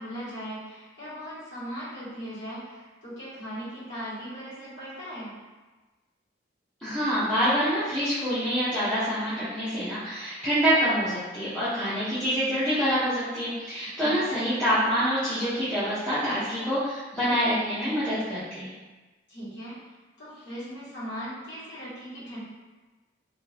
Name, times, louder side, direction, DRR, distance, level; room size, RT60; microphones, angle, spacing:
voice 1, 0.0-5.3 14.0-14.2 19.3-19.8 20.2-22.4, equal, 65° left, -11 dB, 1.5 m, -38 dB
voice 2, 6.8-18.7, equal, 5° left, -14 dB, 0.6 m, -26 dB
2.6 x 2.5 x 3.2 m, 1.2 s
head